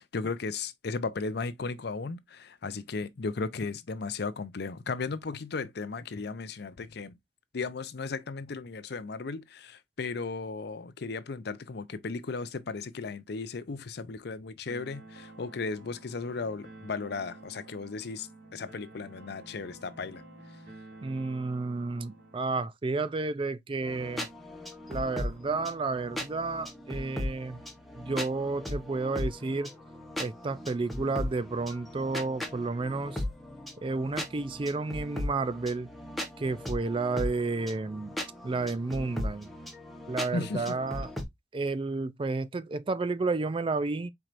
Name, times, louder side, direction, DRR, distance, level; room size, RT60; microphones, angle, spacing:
voice 1, 0.0-7.2 7.5-20.2 40.3-40.8, left 4 dB, 60° left, 0.5 m, -35 dB
sound 1, 14.7-22.7, right 2 dB, 70° right, 2.3 m, -50 dB
voice 2, 21.0-24.3 24.9-27.6 28.0-29.7 30.2-33.2 33.8-35.9 36.4-38.1 38.4-39.5 40.1-41.1 41.5-44.1, right 3 dB, 30° right, 0.4 m, -31 dB
sound 2, 23.8-41.2, left 1 dB, ahead, 1.1 m, -38 dB
4.6 x 4.4 x 2.5 m
head